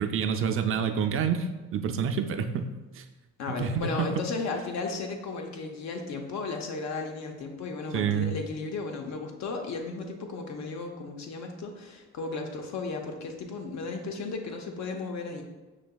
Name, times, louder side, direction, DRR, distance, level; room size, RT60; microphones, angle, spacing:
voice 1, 0.0-3.1 3.5-4.3 7.9-8.3, right 7 dB, 45° right, 6 dB, 0.4 m, -28 dB
voice 2, 3.4-15.4, left 4 dB, 65° left, 3 dB, 0.7 m, -35 dB
6.1 x 2.8 x 2.3 m, 1.2 s
cardioid pair, 90°, 30 cm